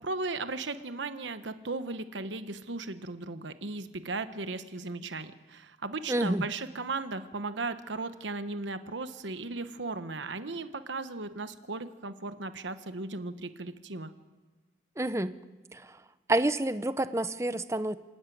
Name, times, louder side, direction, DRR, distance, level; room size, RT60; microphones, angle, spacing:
voice 1, 0.0-14.1, right 3 dB, 90° right, 10 dB, 1.1 m, -36 dB
voice 2, 6.1-6.4 15.0-15.3 15.7-15.9 16.3-18.0, right 1 dB, 15° right, 13 dB, 0.6 m, -28 dB
27.0 x 11.0 x 9.3 m, 1.2 s
head